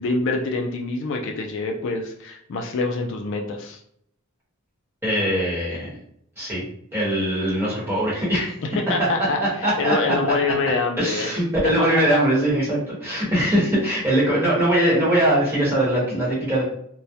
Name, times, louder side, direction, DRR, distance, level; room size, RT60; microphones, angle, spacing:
voice 1, 0.0-3.8 8.6-11.3 12.1-12.2, left 3 dB, 55° left, 2 dB, 0.3 m, -25 dB
voice 2, 5.0-5.9 6.4-6.6 6.9-8.5 9.6-10.1 11.0-16.6, right 1 dB, 10° right, -7 dB, 0.9 m, -21 dB
2.2 x 2.0 x 2.7 m, 0.69 s
head